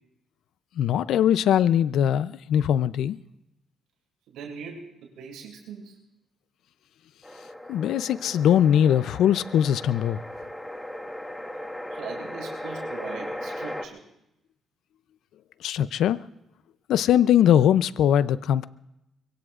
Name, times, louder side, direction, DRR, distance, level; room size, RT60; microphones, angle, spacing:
voice 1, 0.8-3.2 7.7-10.2 15.6-16.2 16.9-18.7, left 10 dB, 80° left, 15 dB, 0.5 m, -21 dB
voice 2, 4.3-6.0 11.9-14.1, right 6 dB, 90° right, 0 dB, 6.5 m, -40 dB
sound 1, 7.2-13.9, left 1 dB, 10° left, 1.7 m, -37 dB
24.5 x 23.0 x 2.5 m, 0.89 s
cardioid pair, 90°, 0 cm